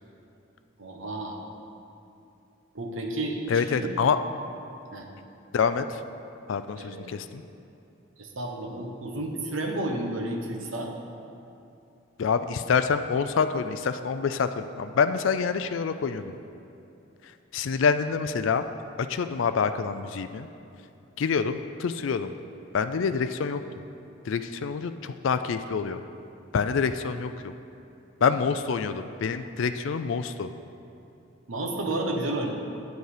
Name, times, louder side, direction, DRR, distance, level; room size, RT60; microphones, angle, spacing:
voice 1, 0.8-1.4 2.7-3.9 4.9-5.1 6.7-7.2 8.2-10.9 28.2-28.4 31.5-32.5, right 1 dB, 75° right, 2 dB, 1.2 m, -32 dB
voice 2, 3.5-4.2 5.5-6.0 6.5-7.4 12.2-16.3 17.5-18.6 19.0-20.5 21.2-22.3 22.7-23.6 24.3-26.0 26.5-27.5 28.2-30.5, left 5 dB, 70° left, 10 dB, 0.4 m, -26 dB
9.1 x 8.0 x 4.9 m, 2.7 s
head